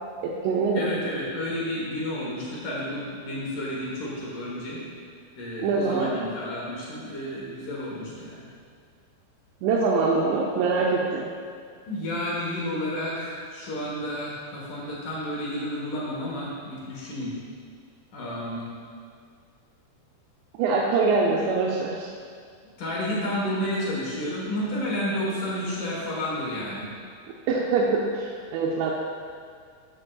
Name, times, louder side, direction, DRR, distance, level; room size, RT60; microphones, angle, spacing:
voice 1, 0.2-0.9 5.6-6.1 9.6-11.2 20.6-22.1 27.5-28.9, right 4 dB, 85° right, -1 dB, 2.8 m, -24 dB
voice 2, 0.7-4.8 5.4-8.4 11.9-17.3 18.1-18.7 22.8-26.9, left 1 dB, 60° left, -5 dB, 2.4 m, -31 dB
13.0 x 7.6 x 2.4 m, 2.1 s
omnidirectional pair, 5.0 m